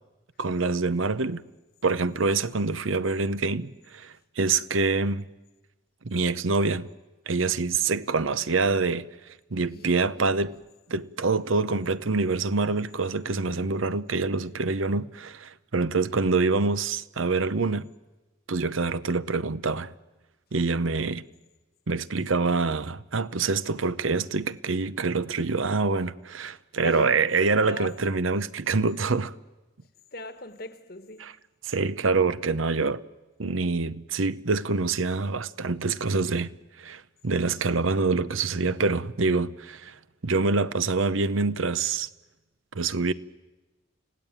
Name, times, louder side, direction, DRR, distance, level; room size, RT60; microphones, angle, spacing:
voice 1, 0.4-1.4 1.8-5.3 6.0-6.9 7.3-9.1 9.5-10.6 10.9-17.9 18.5-19.9 20.5-21.2 21.9-29.3 31.2-31.3 31.6-33.0 33.4-40.0 40.2-42.1 42.7-43.1, right 4 dB, 90° right, 0.8 m, -26 dB
voice 2, 9.7-10.3 26.8-27.1 27.6-28.0 30.1-31.5, left 2 dB, 50° left, 1.4 m, -41 dB
30.0 x 17.0 x 9.0 m
head